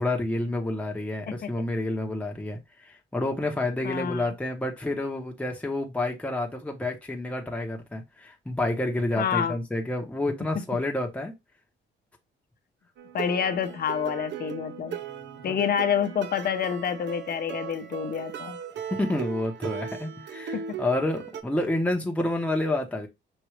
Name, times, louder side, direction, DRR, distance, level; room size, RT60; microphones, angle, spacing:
voice 1, 0.0-11.3 15.0-15.6 18.9-23.1, left 1 dB, 5° left, 1.0 m, -29 dB
voice 2, 3.8-4.3 9.2-9.5 13.1-15.0 15.4-18.6 20.5-20.8, left 8 dB, 50° left, 0.8 m, -28 dB
sound 1, 13.0-21.4, right 8 dB, 65° right, 0.7 m, -38 dB
6.1 x 2.6 x 3.2 m
cardioid pair, 90°, 20 cm